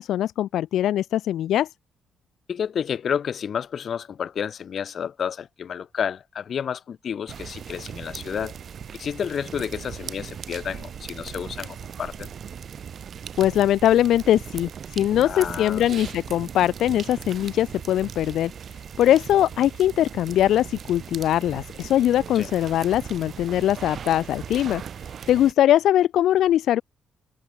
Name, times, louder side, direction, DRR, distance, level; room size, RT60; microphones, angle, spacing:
voice 1, 0.0-1.7 13.4-18.5 19.0-24.8 25.3-26.8, left 12 dB, 75° left, 0.9 m, -21 dB
voice 2, 2.5-8.5 8.9-12.3 15.2-15.8 22.3-22.5, left 8 dB, 55° left, 2.5 m, -30 dB
sound 1, 7.3-25.5, right 8 dB, 55° right, 5.8 m, -38 dB
cardioid pair, 90°, 0 cm